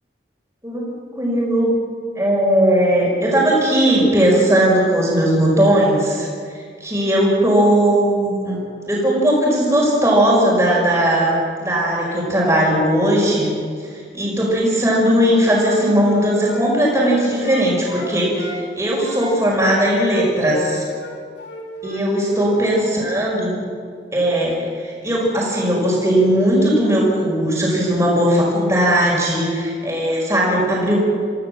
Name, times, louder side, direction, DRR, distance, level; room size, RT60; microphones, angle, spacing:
voice 1, 0.6-1.7 2.2-6.3 6.8-8.6 8.9-13.5 13.9-20.8 21.8-23.6 24.1-31.0, right 1 dB, 15° right, -4 dB, 5.6 m, -18 dB
Wind instrument woodwind instrument, 15.2-18.6 19.0-22.1 22.3-22.6, left 1 dB, 80° left, 4.3 m, -31 dB
25.0 x 16.0 x 7.7 m, 2.1 s
head